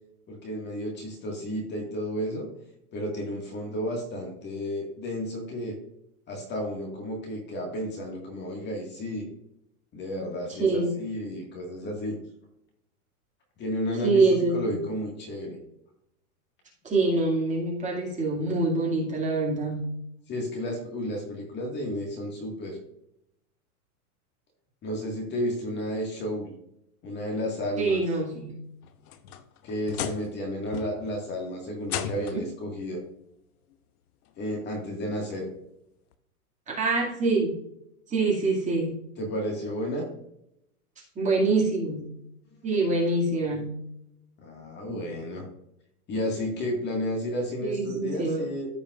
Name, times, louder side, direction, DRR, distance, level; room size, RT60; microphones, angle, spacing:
voice 1, 0.3-2.5 2.9-5.8 6.3-9.3 9.9-12.2 13.6-15.6 20.3-22.8 24.8-26.5 27.0-28.0 29.6-33.0 34.4-35.5 39.2-40.1 44.4-45.4 46.1-48.7, equal, 25° left, 0 dB, 1.8 m, -32 dB
voice 2, 10.5-10.9 14.0-14.9 16.8-19.9 27.8-28.6 36.7-37.5 38.1-39.0 41.2-42.1 42.6-43.7 47.6-48.4, right 3 dB, 15° right, -3 dB, 2.3 m, -25 dB
sound 1, 28.8-30.4 30.7-31.2 31.8-32.5 33.7-33.8 34.4-34.5 36.1-36.2, left 9 dB, 70° left, 1.0 m, -35 dB
14.5 x 5.1 x 2.5 m, 0.78 s
supercardioid pair, 150°, 45 cm